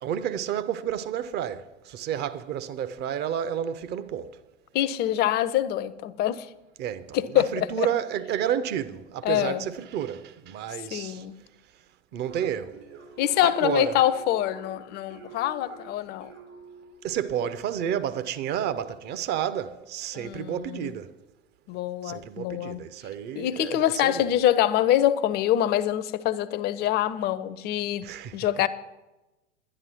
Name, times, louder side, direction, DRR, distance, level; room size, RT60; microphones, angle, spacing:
voice 1, 0.0-4.4 6.8-11.3 12.1-12.8 13.4-14.0 17.0-21.1 22.0-24.3 28.0-28.5, right 9 dB, 30° right, 0.7 m, -31 dB
voice 2, 4.7-6.5 7.1-7.9 9.2-9.6 10.9-11.3 13.2-16.3 20.1-20.9 21.7-22.8 23.3-28.1 28.3-28.7, left 12 dB, 30° left, 0.6 m, -25 dB
sound 1, 12.3-17.0, right 4 dB, 65° right, 4.9 m, -48 dB
11.0 x 11.0 x 6.0 m
figure-of-eight pair, 85°, 36 cm